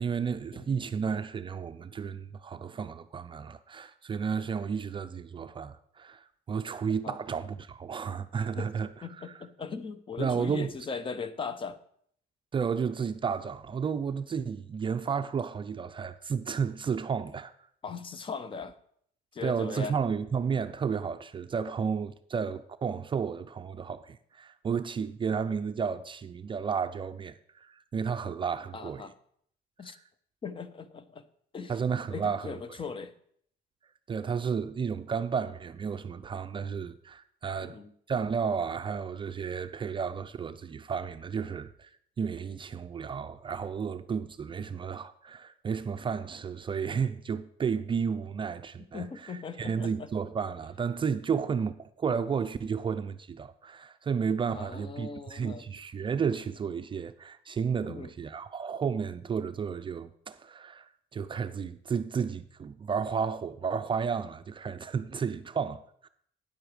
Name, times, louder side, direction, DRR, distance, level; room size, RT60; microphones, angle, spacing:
voice 1, 0.0-8.9 9.2-9.3 10.2-10.7 12.5-17.5 19.4-29.1 31.7-32.6 34.1-37.8 38.1-41.9 42.2-49.3 49.6-60.9 61.1-66.1, right 6 dB, 30° right, 0.5 m, -32 dB
voice 2, 9.0-11.8 17.8-18.8 19.3-19.9 28.7-29.1 29.8-30.0 30.4-31.2 31.5-31.8 32.1-33.1 37.6-37.9 48.8-50.1 54.5-55.6 57.8-58.1, left 5 dB, 30° left, 0.7 m, -39 dB
9.5 x 7.8 x 5.0 m
cardioid pair, 110°, 17 cm